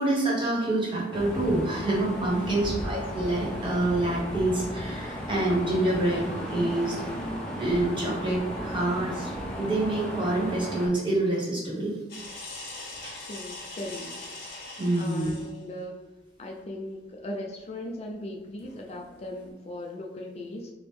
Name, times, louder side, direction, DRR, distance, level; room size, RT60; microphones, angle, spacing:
voice 1, 0.0-7.0 7.6-9.3 9.6-12.0 13.0-13.1 14.8-15.3, right 2 dB, 25° right, -4 dB, 1.0 m, -27 dB
sound 1, 1.1-10.9, equal, 5° left, 0.7 m, -35 dB
voice 2, 2.4-3.0 13.3-14.1 14.9-16.0 16.4-20.7, left 1 dB, 35° left, 0 dB, 0.3 m, -38 dB
sound 2, 12.1-15.6 18.6-19.5, left 2 dB, 55° left, 0.8 m, -42 dB
4.9 x 2.0 x 3.1 m, 1.2 s
head